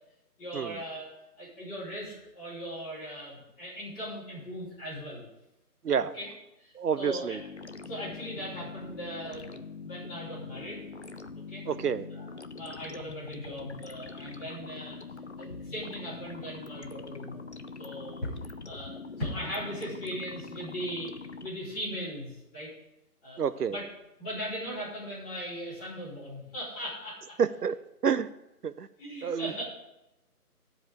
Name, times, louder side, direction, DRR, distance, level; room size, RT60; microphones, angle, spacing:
voice 1, 0.4-1.1 1.4-5.2 6.0-6.3 6.6-7.4 7.8-10.8 11.5-11.6 12.1-15.0 15.4-17.5 17.8-18.3 18.7-22.7 23.2-23.8 24.2-27.4 29.0-29.6, equal, 10° left, -11 dB, 4.2 m, -39 dB
voice 2, 6.8-7.4 11.7-12.0 23.4-23.8 27.4-27.8 28.0-28.3 28.6-28.9 29.2-29.6, right 7 dB, 75° right, 14 dB, 0.7 m, -28 dB
sound 1, 7.3-21.5, left 4 dB, 45° left, 0.6 m, -43 dB
11.5 x 5.0 x 8.4 m, 0.90 s
figure-of-eight pair, 170°, 47 cm